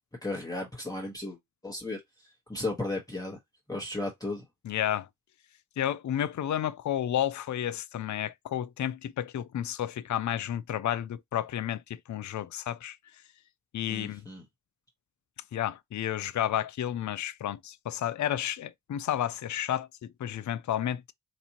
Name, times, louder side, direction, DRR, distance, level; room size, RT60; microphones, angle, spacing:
voice 1, 0.2-1.4 1.6-3.4 3.7-4.4 13.9-14.4, left 2 dB, 10° left, 1.2 m, -35 dB
voice 2, 4.6-5.1 5.8-13.0 13.7-14.2 15.5-21.1, left 11 dB, 60° left, 0.5 m, -31 dB
4.2 x 2.5 x 2.9 m
cardioid pair, 65°, 34 cm